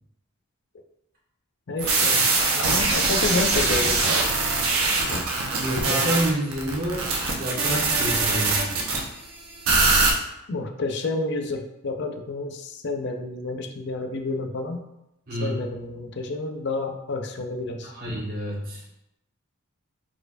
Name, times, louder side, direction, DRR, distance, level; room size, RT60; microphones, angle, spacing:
voice 1, 1.7-2.2 2.5-4.2 5.1-5.2 10.5-14.8 15.4-17.9, left 3 dB, 55° left, 4 dB, 0.5 m, -30 dB
sound 1, 1.8-9.0 9.6-10.1, right 3 dB, 85° right, 1.0 m, -22 dB
voice 2, 5.6-7.1 7.3-8.7 15.3-15.6 17.8-18.8, right 1 dB, 40° right, -5 dB, 1.4 m, -28 dB
4.4 x 4.3 x 2.5 m, 0.85 s
head